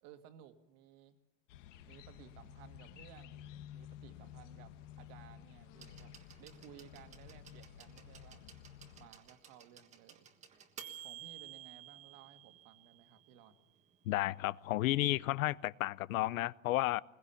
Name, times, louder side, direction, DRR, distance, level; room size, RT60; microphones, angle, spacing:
voice 1, 0.0-1.2 1.9-6.1 6.4-8.4 9.0-10.3 10.9-13.6, right 10 dB, 40° right, 1.9 m, -58 dB
sound 1, 1.5-9.1, left 10 dB, 65° left, 1.6 m, -53 dB
sound 2, 5.8-13.6 14.7-14.8, right 10 dB, 15° right, 1.5 m, -53 dB
voice 2, 14.1-17.0, left 16 dB, 90° left, 0.8 m, -32 dB
21.5 x 21.0 x 7.1 m
supercardioid pair, 170°, 40 cm